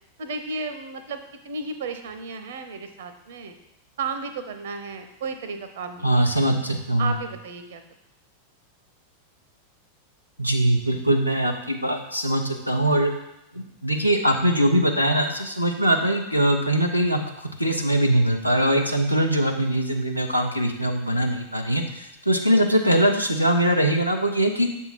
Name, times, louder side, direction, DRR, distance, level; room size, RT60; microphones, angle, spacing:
voice 1, 0.2-3.5 4.0-6.4 7.0-7.8, right 4 dB, 60° right, 8 dB, 0.6 m, -33 dB
voice 2, 6.0-7.2 10.4-13.1 13.5-24.7, right 1 dB, 90° left, 3 dB, 0.7 m, -22 dB
6.8 x 3.6 x 4.4 m, 0.85 s
figure-of-eight pair, 90°, 0 cm